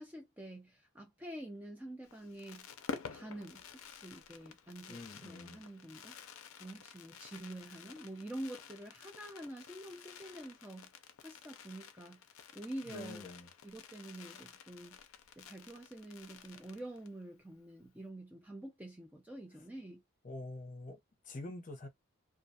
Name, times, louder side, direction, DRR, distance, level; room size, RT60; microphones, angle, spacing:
voice 1, 0.0-2.7 3.1-6.1 6.6-10.9 11.2-12.2 12.5-13.3 13.6-15.0 15.4-20.0, right 1 dB, 5° right, 0.4 m, -47 dB
Fireworks, 2.0-17.2 17.5-17.6 17.8-18.1, left 6 dB, 80° left, 0.4 m, -51 dB
voice 2, 4.9-5.6 12.9-13.5 20.2-21.0 21.2-21.9, left 2 dB, 35° left, 0.6 m, -46 dB
2.3 x 2.2 x 2.6 m
head